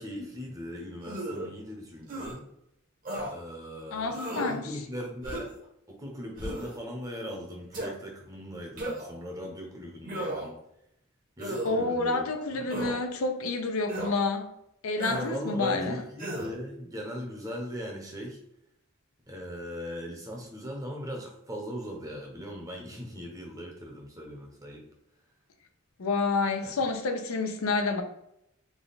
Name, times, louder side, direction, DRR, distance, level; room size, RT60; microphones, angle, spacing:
voice 1, 0.0-2.5 3.2-5.5 5.9-10.5 11.4-12.6 15.1-18.4 19.3-24.8 26.6-26.7, equal, 15° right, 0.7 m, -39 dB
sound 1, 1.0-1.5 2.1-2.3 3.0-3.3 4.1-4.6 5.2-5.6 6.4-6.8 7.7-7.9 8.8-9.2 10.0-10.6 11.4-11.7 12.7-13.0 13.9-14.1 15.0-15.3 16.2-16.5, right 1 dB, 40° right, 0.9 m, -34 dB
voice 2, 3.9-4.8 11.6-14.5 14.8-16.0 26.0-28.0, left 3 dB, 85° left, 0.5 m, -29 dB
3.5 x 2.3 x 4.0 m
head